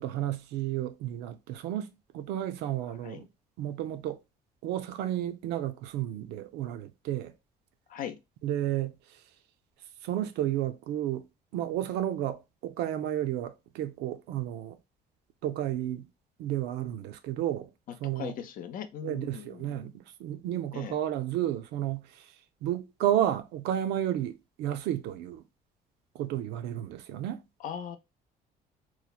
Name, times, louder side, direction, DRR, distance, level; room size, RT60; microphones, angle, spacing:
voice 1, 0.0-1.9 2.1-3.2 3.6-4.2 4.6-7.3 8.4-9.0 10.0-11.2 11.5-14.8 15.4-16.1 16.4-17.7 18.0-18.3 19.0-22.2 22.6-25.4 26.1-27.4, right 12 dB, 85° right, 0.4 m, -32 dB
voice 2, 17.9-19.9 20.7-21.0 27.6-28.0, left 9 dB, 55° left, 0.5 m, -39 dB
3.0 x 2.1 x 2.3 m
cardioid pair, 110°, 17 cm